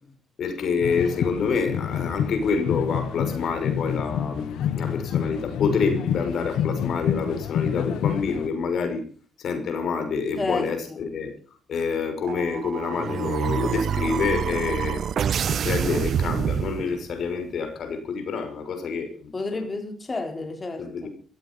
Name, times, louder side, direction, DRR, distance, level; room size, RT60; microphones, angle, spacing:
voice 1, 0.4-9.1 9.4-11.3 11.7-15.0 15.5-19.3 20.8-21.1, left 5 dB, 65° left, 7 dB, 5.9 m, -27 dB
sound 1, 0.8-8.5, left 8 dB, 80° left, 1.4 m, -28 dB
voice 2, 10.4-11.0 19.3-21.1, left 3 dB, 25° left, 4 dB, 4.0 m, -31 dB
sound 2, 12.2-17.3, right 8 dB, 60° right, 0.7 m, -27 dB
16.0 x 15.0 x 5.5 m, 0.41 s
cardioid pair, 90°, 0 cm